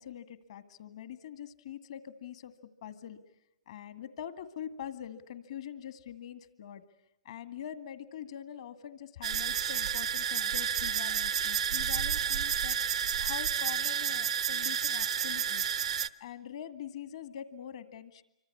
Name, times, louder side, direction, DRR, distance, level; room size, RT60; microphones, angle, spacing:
voice 1, 0.0-2.5 2.8-3.2 3.7-6.8 7.2-15.7 16.2-18.2, left 9 dB, 65° left, 11 dB, 2.1 m, -44 dB
sound 1, 9.2-16.1, right 8 dB, 75° right, 0.9 m, -30 dB
27.0 x 25.0 x 8.6 m, 0.89 s
hypercardioid pair, 130°, 4 cm